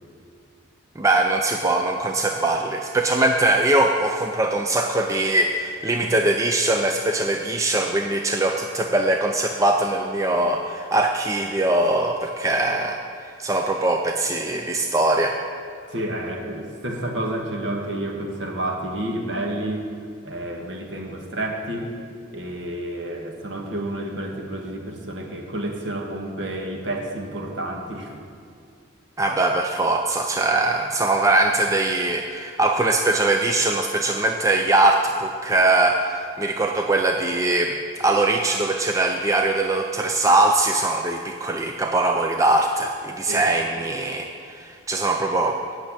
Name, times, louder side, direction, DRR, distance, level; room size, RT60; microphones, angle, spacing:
voice 1, 1.0-15.4 29.2-45.6, right 2 dB, 15° right, 3 dB, 0.4 m, -21 dB
voice 2, 15.9-19.9 20.2-21.9 22.3-28.3 43.2-43.5 43.7-43.9, right 1 dB, 60° right, 1 dB, 1.4 m, -30 dB
8.3 x 6.4 x 8.4 m, 2.3 s
head